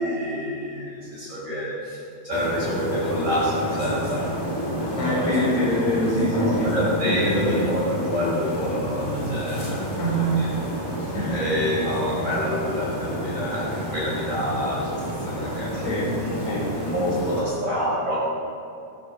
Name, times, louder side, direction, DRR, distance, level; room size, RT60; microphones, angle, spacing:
voice 1, 0.0-4.2 5.4-5.6 6.6-10.5 11.0-15.8 16.2-16.5 16.8-18.2, equal, 20° right, -8 dB, 4.9 m, -27 dB
sound 1, 2.3-17.4, equal, 10° left, 1.6 m, -30 dB
voice 2, 5.0-6.7 7.0-7.7 10.0-10.5 11.1-11.5 15.7-16.1 16.5-16.7, equal, 80° left, -5 dB, 6.2 m, -24 dB
24.0 x 11.5 x 4.2 m, 2.5 s
omnidirectional pair, 4.5 m